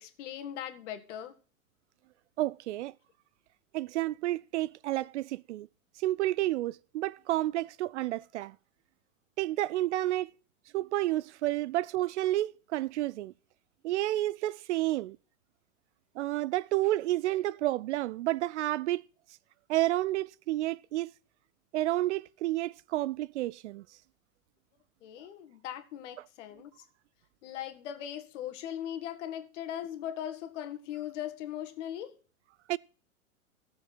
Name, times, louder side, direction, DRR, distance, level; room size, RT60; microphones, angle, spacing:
voice 1, 0.0-1.4 25.0-26.7 27.4-32.2, left 10 dB, 55° left, 2.0 m, -39 dB
voice 2, 2.4-2.9 3.7-5.7 6.0-8.5 9.4-10.3 10.7-13.3 13.8-15.2 16.2-19.0 19.7-21.1 21.7-23.8 32.7-32.8, right 16 dB, 55° right, 0.5 m, -30 dB
16.0 x 7.2 x 4.1 m
hypercardioid pair, 115°, 42 cm